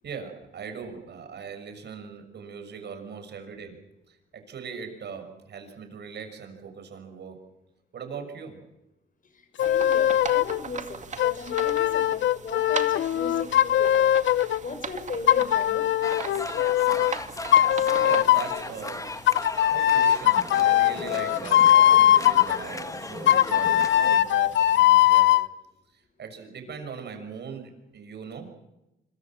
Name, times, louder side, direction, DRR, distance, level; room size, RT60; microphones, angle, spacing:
voice 1, 0.0-3.8 4.1-7.4 7.9-8.6 18.0-19.2 19.7-25.4 26.2-28.5, right 6 dB, 60° right, 6 dB, 6.4 m, -40 dB
sound 1, 9.6-10.6 11.2-14.6 15.3-17.1 17.5-18.6 19.3-22.6 23.3-25.5, left 12 dB, 70° left, 0.8 m, -20 dB
voice 2, 9.6-14.1 14.6-15.9, left 4 dB, 45° left, 8 dB, 7.1 m, -37 dB
sound 2, 9.6-25.0, right 5 dB, 35° right, 2.3 m, -40 dB
sound 3, 16.0-24.2, left 2 dB, 15° left, 1.6 m, -36 dB
25.5 x 23.0 x 7.5 m, 0.92 s
cardioid pair, 90°, 20 cm